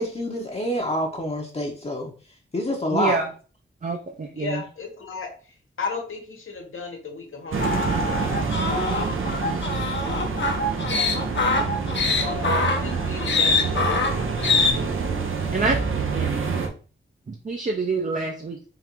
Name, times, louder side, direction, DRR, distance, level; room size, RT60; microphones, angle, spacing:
voice 1, 0.0-2.1 2.5-3.2, left 1 dB, 30° left, 0 dB, 0.7 m, -27 dB
voice 2, 2.9-3.3 3.8-4.6 11.6-11.7 15.5-15.8 16.1-16.5 17.3-18.7, right 4 dB, 40° right, 3 dB, 0.6 m, -27 dB
voice 3, 4.4-5.3 5.8-8.1 10.9-11.1 12.2-14.0, left 4 dB, 85° left, 2 dB, 1.1 m, -34 dB
sound 1, 7.5-16.7, right 5 dB, 80° right, 0.7 m, -27 dB
sound 2, 7.6-14.7, left 3 dB, 65° left, 0.8 m, -24 dB
3.7 x 2.5 x 4.4 m, 0.39 s
wide cardioid pair, 100°, 20 cm